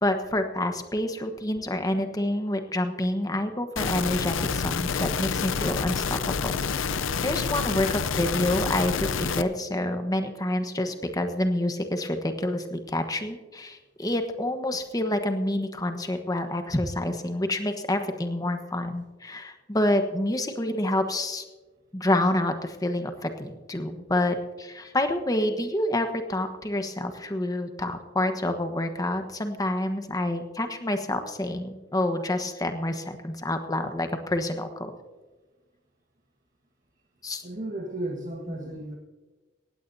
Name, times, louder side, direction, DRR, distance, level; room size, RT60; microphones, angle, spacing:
voice 1, 0.0-6.6 7.2-21.4 21.9-34.9 37.2-37.4, left 1 dB, 20° left, 6 dB, 1.2 m, -28 dB
sound 1, 3.8-9.4, left 6 dB, 90° left, 0.6 m, -28 dB
voice 2, 37.4-39.0, right 1 dB, 40° right, -1 dB, 1.5 m, -34 dB
18.0 x 16.0 x 2.7 m, 1.2 s
head